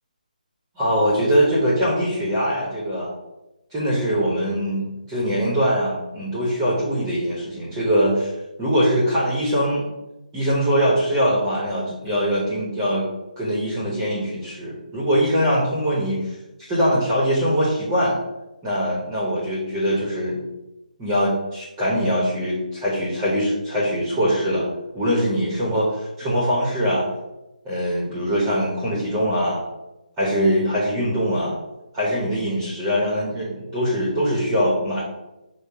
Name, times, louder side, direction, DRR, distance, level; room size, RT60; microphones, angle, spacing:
voice 1, 0.8-3.1 3.7-8.3 8.6-9.8 10.3-13.1 13.4-16.3 16.7-18.2 18.6-20.4 21.0-24.7 24.9-27.1 27.6-29.6 30.2-31.6 31.9-35.0, equal, 10° right, -7 dB, 0.9 m, -22 dB
5.1 x 2.2 x 4.6 m, 0.98 s
hypercardioid pair, 165°, 5 cm